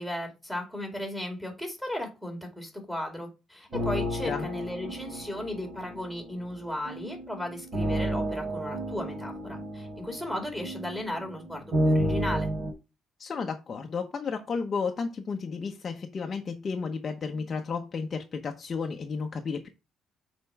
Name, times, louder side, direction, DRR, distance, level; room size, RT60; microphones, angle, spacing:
voice 1, 0.0-12.5, left 1 dB, 5° right, 2.4 m, -35 dB
sound 1, 3.7-12.7, equal, 40° right, 3.7 m, -31 dB
voice 2, 13.2-19.7, left 5 dB, 30° left, 0.8 m, -32 dB
6.7 x 4.4 x 5.7 m
cardioid pair, 155°, 0 cm